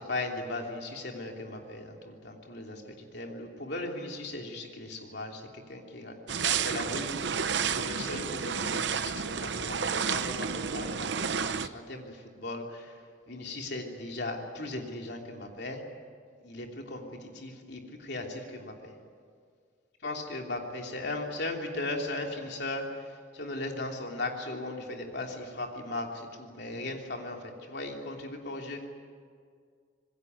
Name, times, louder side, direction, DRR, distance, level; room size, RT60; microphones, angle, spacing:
voice 1, 0.0-5.4 5.7-7.1 7.7-12.9 13.3-15.8 16.4-18.9 20.0-22.9 23.3-28.9, left 2 dB, 55° left, 2 dB, 3.2 m, -37 dB
sound 1, 6.3-11.7, right 6 dB, 60° right, 0.8 m, -31 dB
26.5 x 21.0 x 9.5 m, 2.1 s
head